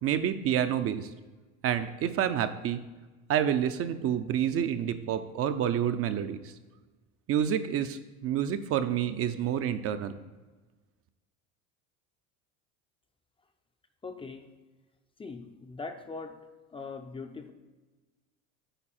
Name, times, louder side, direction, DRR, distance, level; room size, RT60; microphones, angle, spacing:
voice 1, 0.0-1.1 1.6-2.8 3.3-6.5 7.3-10.1, right 9 dB, 45° right, 9 dB, 0.5 m, -28 dB
voice 2, 14.0-14.5 15.2-16.5 16.7-17.5, left 4 dB, 15° left, 6 dB, 0.5 m, -41 dB
8.9 x 4.7 x 4.3 m, 1.3 s
supercardioid pair, 120°, 34 cm